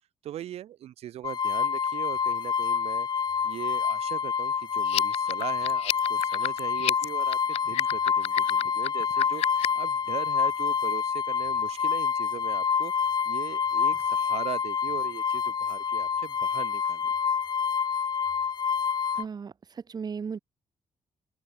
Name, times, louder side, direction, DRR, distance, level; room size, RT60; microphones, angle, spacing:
voice 1, 0.2-3.1 3.4-17.1, right 12 dB, 85° right, 5.0 m, -40 dB
sound 1, 1.2-19.2, left 6 dB, 45° left, 1.2 m, -27 dB
sound 2, 4.8-9.9, left 13 dB, 90° left, 1.3 m, -30 dB
voice 2, 19.2-20.4, right 6 dB, 40° right, 3.6 m, -36 dB
open air
cardioid pair, 110°, 10 cm